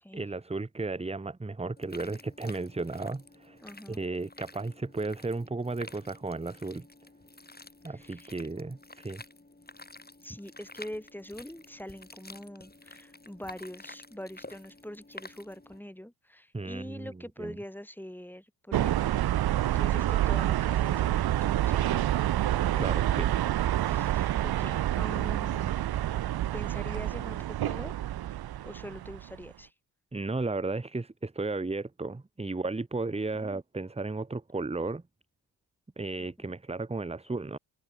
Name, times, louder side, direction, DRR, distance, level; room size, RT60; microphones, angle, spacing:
voice 1, 0.1-3.6 3.9-6.9 7.8-9.2 16.5-17.1 17.4-17.6 22.7-23.3 30.1-35.0 36.0-37.6, right 3 dB, 15° right, 1.1 m, -34 dB
sound 1, 1.8-15.8, left 2 dB, 20° left, 7.4 m, -50 dB
voice 2, 3.6-4.0 7.9-8.3 10.2-19.2 19.7-21.8 23.8-26.1 26.5-27.9 28.6-29.7 33.3-33.6 36.4-36.6, equal, 5° left, 2.8 m, -44 dB
sound 2, 18.7-29.5, right 13 dB, 55° right, 0.7 m, -28 dB
open air
supercardioid pair, 45°, 46 cm